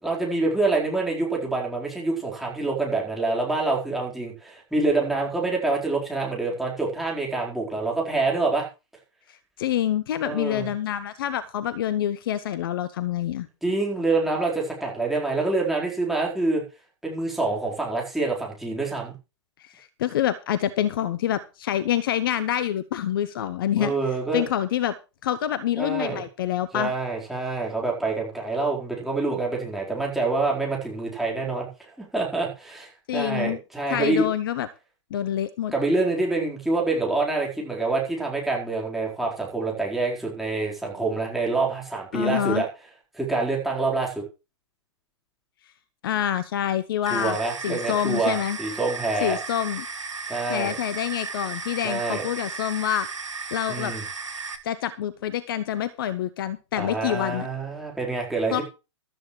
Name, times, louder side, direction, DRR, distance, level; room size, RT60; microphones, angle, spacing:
voice 1, 0.0-8.7 10.2-10.7 13.6-16.6 17.0-19.1 23.8-24.4 25.7-26.2 26.7-34.3 35.7-42.7 43.1-44.2 47.1-49.4 50.3-50.7 51.8-52.3 53.7-54.0 56.7-58.6, right 3 dB, ahead, -3 dB, 4.4 m, -26 dB
voice 2, 9.3-13.5 19.6-23.9 24.3-24.9 25.2-26.9 33.1-33.6 33.9-34.7 35.1-35.7 42.1-42.6 46.0-47.4 47.6-48.6 49.2-49.9 50.5-53.1 53.5-53.9 54.6-57.5 58.5-58.6, left 11 dB, 45° left, 16 dB, 0.9 m, -26 dB
sound 1, 47.1-54.6, right 4 dB, 75° right, 2.3 m, -35 dB
14.5 x 13.0 x 3.2 m, 0.30 s
figure-of-eight pair, 120°, 16 cm